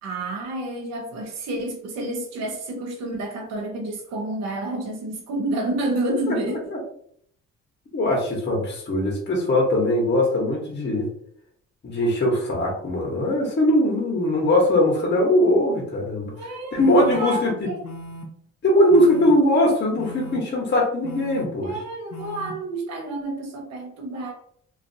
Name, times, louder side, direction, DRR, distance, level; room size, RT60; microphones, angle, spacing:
voice 1, 0.0-6.6 16.3-17.9 21.6-24.3, right 2 dB, 60° right, 1 dB, 0.6 m, -29 dB
voice 2, 7.9-11.1 11.8-16.3 16.7-17.5 18.6-21.7, left 1 dB, 35° left, -2 dB, 0.9 m, -20 dB
sound 1, 16.8-17.2 17.8-18.2 18.9-19.3 20.0-20.4 21.0-21.4 22.1-22.5, left 1 dB, 65° left, 0.6 m, -38 dB
2.5 x 2.4 x 2.6 m, 0.65 s
cardioid pair, 90°, 30 cm